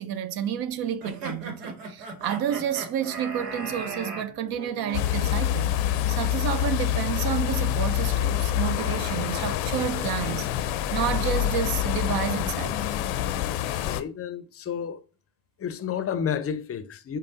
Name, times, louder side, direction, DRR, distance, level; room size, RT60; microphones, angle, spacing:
voice 1, 0.0-5.7 6.1-12.8, right 10 dB, 50° right, 0.6 m, -30 dB
sound 1, 0.9-1.1 2.2-10.4, right 2 dB, 20° right, 1.6 m, -48 dB
sound 2, 1.0-4.3, right 3 dB, 85° right, 1.1 m, -36 dB
sound 3, 4.9-14.0, left 12 dB, 75° left, 0.6 m, -26 dB
voice 2, 13.7-15.0 15.6-17.2, left 8 dB, 30° left, 0.6 m, -31 dB
5.2 x 2.1 x 2.7 m
hypercardioid pair, 60°, 49 cm